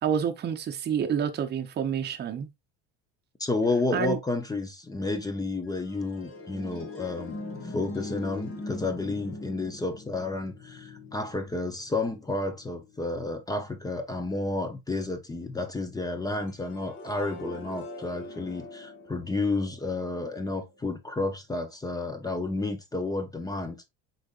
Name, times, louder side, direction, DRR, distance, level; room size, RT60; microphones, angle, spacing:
voice 1, 0.0-2.5 3.9-4.2, right 8 dB, 35° right, 0.8 m, -28 dB
voice 2, 3.4-7.4 7.7-23.9, left 2 dB, 10° left, 0.6 m, -31 dB
sound 1, 5.7-13.3 16.5-20.6, left 2 dB, 45° left, 1.5 m, -42 dB
5.1 x 4.0 x 2.5 m
cardioid pair, 135°, 31 cm